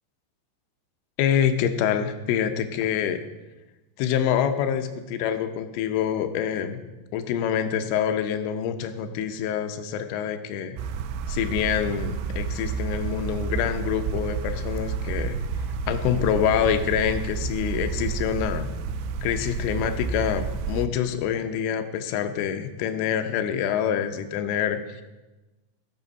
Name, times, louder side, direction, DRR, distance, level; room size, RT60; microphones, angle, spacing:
voice 1, 1.2-3.2 4.0-6.8 7.1-10.8 11.3-15.4 15.9-18.7 19.2-25.0, left 9 dB, 80° left, 8 dB, 3.3 m, -26 dB
sound 1, 10.8-20.9, right 5 dB, 80° right, 3.0 m, -30 dB
17.5 x 7.2 x 5.4 m, 1.1 s
omnidirectional pair, 5.7 m